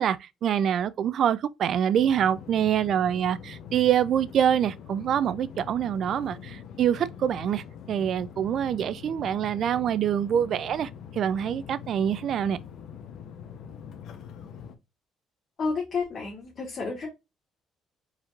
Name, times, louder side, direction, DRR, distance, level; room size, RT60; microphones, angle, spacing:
voice 1, 0.0-12.6, right 9 dB, 55° right, 0.4 m, -25 dB
sound 1, 2.0-14.7, left 8 dB, 65° left, 0.9 m, -43 dB
voice 2, 15.6-17.1, left 4 dB, 45° left, 1.8 m, -30 dB
4.5 x 4.1 x 2.5 m
cardioid pair, 115°, 0 cm